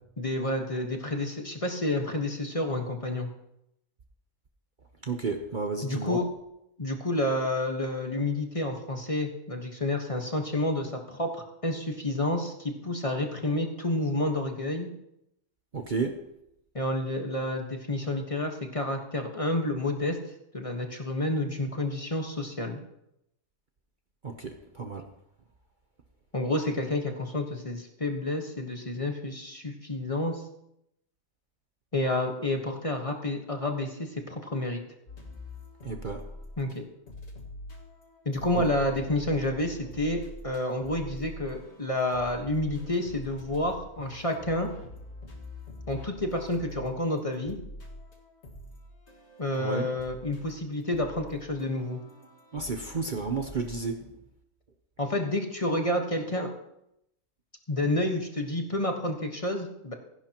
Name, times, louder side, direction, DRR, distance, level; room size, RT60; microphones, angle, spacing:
voice 1, 0.2-3.3 5.8-6.2 6.8-14.9 16.7-20.2 20.5-22.8 26.3-30.4 31.9-34.8 36.6-36.8 38.2-44.7 45.9-47.6 49.4-52.0 55.0-56.5 57.7-59.9, left 1 dB, 25° left, 3 dB, 1.4 m, -29 dB
voice 2, 5.0-6.2 15.7-16.2 24.2-25.0 35.8-36.2 49.6-49.9 52.5-54.0, right 4 dB, 40° right, 5 dB, 0.9 m, -32 dB
sound 1, 35.1-36.8 37.1-53.8, left 1 dB, 55° left, 2.1 m, -45 dB
26.5 x 11.0 x 3.0 m, 0.82 s
omnidirectional pair, 1.4 m